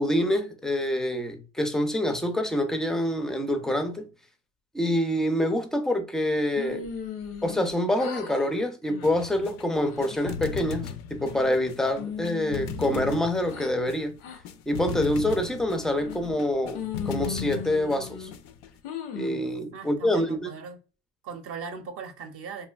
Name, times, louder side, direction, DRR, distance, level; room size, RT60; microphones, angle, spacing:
voice 1, 0.0-4.1 4.7-6.9 7.4-14.1 14.7-18.3 19.2-20.5, left 1 dB, ahead, 0.4 m, -26 dB
sound 1, 6.6-7.7 8.0-8.5 8.9-9.3 9.7-10.3 10.8-11.6 12.0-13.7 14.2-14.4 14.9-15.4 16.0-16.4 16.8-18.3 18.8-19.4, left 7 dB, 85° left, 0.9 m, -37 dB
sound 2, 9.0-18.8, left 6 dB, 65° left, 0.4 m, -38 dB
voice 2, 19.7-20.8 21.2-22.7, right 5 dB, 50° right, 0.6 m, -38 dB
3.1 x 2.5 x 2.2 m
cardioid pair, 120°, 30 cm